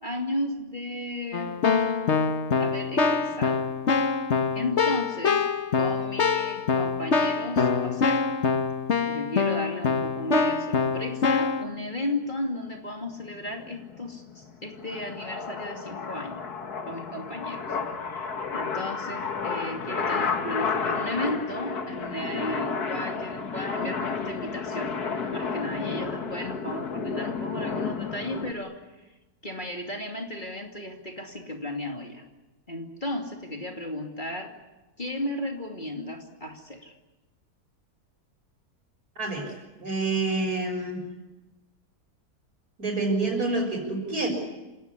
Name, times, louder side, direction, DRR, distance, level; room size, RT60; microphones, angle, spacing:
voice 1, 0.0-2.0 2.6-3.7 4.5-5.4 5.7-8.2 9.1-16.5 16.8-17.8 18.0-24.9 25.3-29.1 29.4-32.2 32.7-34.5 35.0-36.9, left 1 dB, 30° left, 2 dB, 2.8 m, -34 dB
Keyboard (musical), 1.3-11.6, left 5 dB, 45° left, 1.5 m, -25 dB
sound 1, 13.2-28.5, left 5 dB, 70° left, 2.2 m, -32 dB
voice 2, 39.2-41.0 42.8-44.3, right 3 dB, 65° right, 3 dB, 7.0 m, -28 dB
28.0 x 16.5 x 9.9 m, 1.1 s
omnidirectional pair, 1.7 m